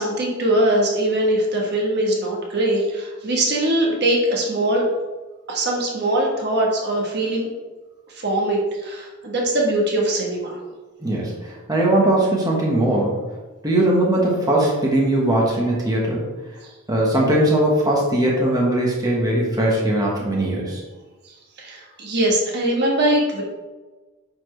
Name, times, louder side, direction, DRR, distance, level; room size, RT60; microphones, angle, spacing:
voice 1, 0.0-4.8 5.5-7.5 8.1-10.6 16.6-16.7 21.2-23.4, right 1 dB, 50° right, -1 dB, 1.3 m, -21 dB
voice 2, 11.0-13.2 13.6-16.2 16.9-20.8, right 1 dB, 15° right, -3 dB, 1.3 m, -20 dB
9.3 x 4.3 x 3.3 m, 1.2 s
head